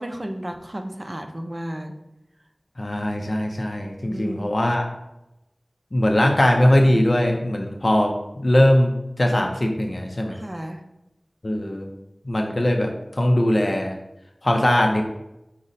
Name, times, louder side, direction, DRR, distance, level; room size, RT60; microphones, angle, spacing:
voice 1, 0.0-1.9 4.0-4.5 10.3-10.8, right 1 dB, 40° right, 4 dB, 0.4 m, -33 dB
voice 2, 2.8-4.9 5.9-10.4 11.4-11.9 12.3-14.0 14.4-15.0, left 1 dB, 55° left, 1 dB, 0.4 m, -20 dB
4.9 x 2.0 x 4.0 m, 0.89 s
wide cardioid pair, 45°, 0 cm